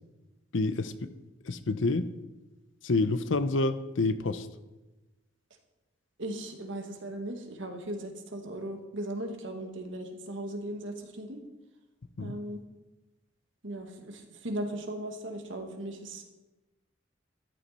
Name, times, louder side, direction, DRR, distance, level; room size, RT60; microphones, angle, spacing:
voice 1, 0.5-1.1 1.4-2.1 2.8-4.5 12.2-12.3, left 3 dB, 80° left, 13 dB, 0.7 m, -28 dB
voice 2, 6.2-11.4 12.2-12.6 13.6-16.2, right 1 dB, 75° right, 4 dB, 1.8 m, -37 dB
13.5 x 11.5 x 4.3 m, 1.1 s
head